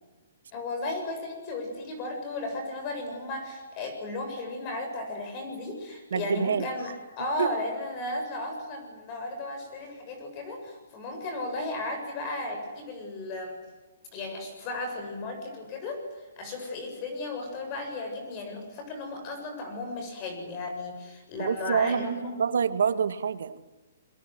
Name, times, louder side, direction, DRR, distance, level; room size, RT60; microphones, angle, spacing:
voice 1, 0.5-13.6 14.1-22.5, left 2 dB, 30° left, 5 dB, 7.5 m, -35 dB
voice 2, 6.1-6.7 7.4-7.5 21.4-23.6, right 7 dB, 80° right, 10 dB, 2.2 m, -27 dB
28.5 x 23.5 x 7.9 m, 1.1 s
hypercardioid pair, 160°, 0 cm